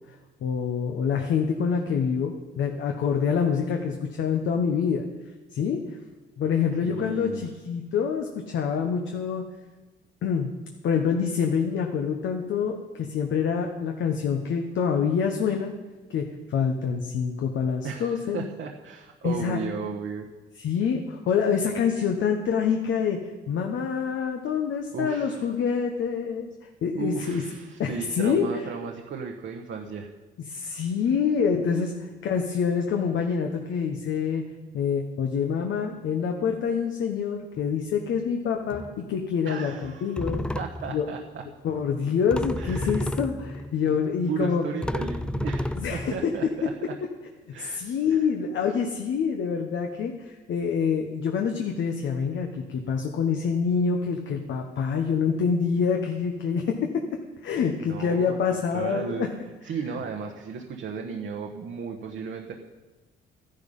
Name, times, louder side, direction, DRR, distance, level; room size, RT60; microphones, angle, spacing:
voice 1, 0.4-5.0 5.5-6.0 6.4-9.4 10.2-10.5 10.8-15.7 16.1-18.5 19.2-19.6 20.6-23.2 23.5-26.5 26.8-27.4 27.8-28.6 30.5-34.4 34.7-40.4 40.9-41.1 41.6-44.6 45.8-46.1 47.6-57.0 57.4-59.3, left 6 dB, 70° left, 3 dB, 1.2 m, -26 dB
voice 2, 6.8-7.4 17.8-20.3 24.9-25.4 26.9-30.1 39.4-40.3 40.5-41.4 42.6-43.1 43.9-44.0 44.3-46.9 47.5-47.8 48.1-48.3 57.8-58.4 58.7-59.3 59.6-62.5, right 6 dB, 65° right, 1 dB, 1.2 m, -35 dB
sound 1, 37.6-37.8 38.7-39.1 39.8-39.9 40.2-41.0 42.3-43.8 44.4-44.5 44.8-46.7, left 1 dB, 5° left, 0.4 m, -31 dB
13.5 x 10.5 x 5.5 m, 1.2 s
cardioid pair, 90°, 20 cm